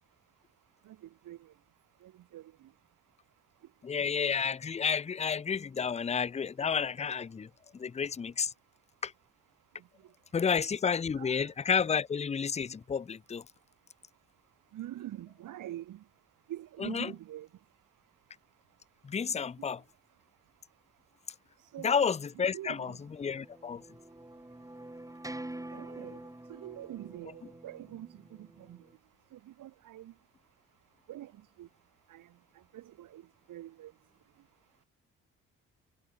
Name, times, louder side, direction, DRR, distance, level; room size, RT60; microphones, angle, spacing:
voice 1, 3.8-7.5 7.7-8.5 9.0-9.1 10.3-13.4 16.8-17.1 19.0-19.8 21.8-22.9 23.2-23.8, left 6 dB, 20° left, 0.5 m, -31 dB
voice 2, 11.2-11.5 14.7-16.0 16.5-17.5 21.7-22.0 22.5-23.0 25.7-26.2 26.5-28.1 28.7-28.8 29.3-30.1 31.1-31.3 31.6-31.7 32.1-32.3 32.7-33.2 33.5-33.9, right 13 dB, 80° right, 3.2 m, -44 dB
sound 1, 23.0-29.0, right 1 dB, 10° right, 4.8 m, -47 dB
supercardioid pair, 70°, 32 cm